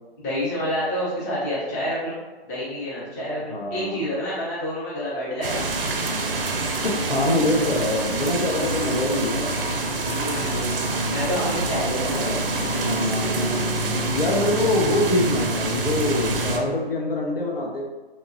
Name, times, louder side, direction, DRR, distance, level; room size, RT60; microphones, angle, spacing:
voice 1, 0.2-2.2 2.4-5.7 8.5-8.7 10.0-10.7 11.1-12.2, left 1 dB, 15° left, -9 dB, 0.7 m, -28 dB
voice 2, 3.5-4.1 6.8-9.6 12.1-12.4 12.7-13.6 14.1-17.8, left 1 dB, 60° left, -1 dB, 0.7 m, -24 dB
sound 1, 5.4-16.6, right 2 dB, 60° right, 0.5 m, -26 dB
2.9 x 2.2 x 2.6 m, 1.2 s
hypercardioid pair, 150°, 32 cm